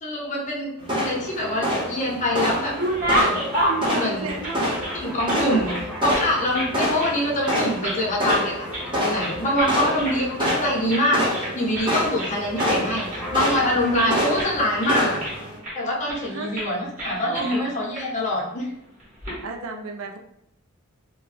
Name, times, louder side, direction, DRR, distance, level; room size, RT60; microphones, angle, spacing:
voice 1, 0.0-2.8 3.1-3.4 3.9-4.3 4.9-5.7 6.0-8.7 8.9-15.2 15.7-18.7 19.3-19.4, left 1 dB, 35° left, -3 dB, 0.7 m, -25 dB
sound 1, 0.8-15.6, equal, 25° right, 0.8 m, -27 dB
sound 2, 1.2-2.1 2.4-5.4 5.6-6.7 7.0-7.2 7.4-8.0 8.3-8.9 9.2-10.2 10.4-10.6 10.9-11.1 11.3-11.9 12.2-14.1 14.4-14.5 14.8-15.7 16.1-16.3 16.5-16.7 17.0-17.6 17.9-18.0 19.0-19.3, right 1 dB, 40° right, 1.4 m, -29 dB
sound 3, 2.5-11.4 11.7-15.3, left 1 dB, ahead, 0.4 m, -39 dB
voice 2, 3.7-4.9 5.3-5.8 6.7-7.0 12.7-13.1 16.3-16.6 17.2-17.7 19.4-20.2, right 3 dB, 65° right, 4 dB, 0.4 m, -33 dB
2.8 x 2.2 x 3.2 m, 0.77 s
head